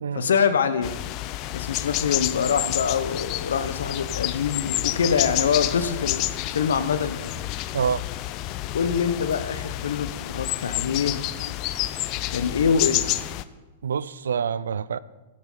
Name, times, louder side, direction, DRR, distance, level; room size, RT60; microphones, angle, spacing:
voice 1, 0.1-1.0 1.5-7.4 8.7-11.2 12.3-13.1, left 6 dB, 85° left, 0.8 m, -25 dB
sound 1, 0.8-13.4, left 15 dB, 45° left, 0.5 m, -29 dB
voice 2, 13.8-15.0, right 7 dB, 85° right, 0.3 m, -26 dB
13.5 x 8.7 x 3.9 m
hypercardioid pair, 125°, 0 cm